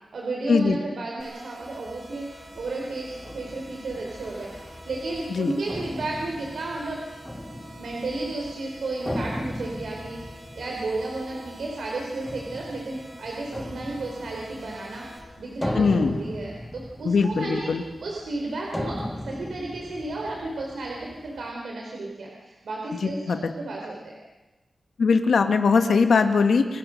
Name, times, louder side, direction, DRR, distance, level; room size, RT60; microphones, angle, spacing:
voice 1, 0.1-2.2 2.5-7.0 7.8-10.2 10.5-17.7 18.0-24.2, right 2 dB, 85° right, -1 dB, 4.5 m, -33 dB
sound 1, 1.2-15.2, right 1 dB, 35° right, 7.8 m, -47 dB
sound 2, 1.6-21.5, left 1 dB, 5° left, 1.6 m, -38 dB
voice 2, 15.7-16.2 17.0-17.8 23.0-23.4 25.0-26.8, left 5 dB, 80° left, 6 dB, 1.8 m, -21 dB
29.0 x 20.5 x 6.6 m, 1.1 s
wide cardioid pair, 165°, 0 cm